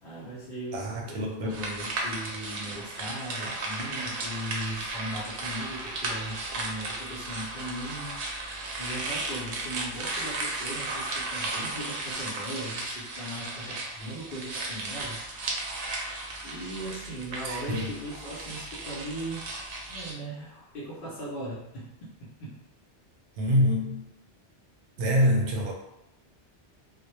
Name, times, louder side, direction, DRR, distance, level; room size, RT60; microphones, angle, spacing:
voice 1, 0.0-8.2 8.8-15.2 16.4-19.5 19.9-21.9 22.2-22.6, right 1 dB, 60° left, -8 dB, 0.7 m, -38 dB
voice 2, 0.7-1.7 17.4-18.0 23.4-24.1 25.0-25.7, equal, 90° right, 0 dB, 0.9 m, -26 dB
sound 1, 1.5-20.1, right 2 dB, 65° right, 0.7 m, -35 dB
2.1 x 2.1 x 2.9 m, 0.85 s
omnidirectional pair, 1.1 m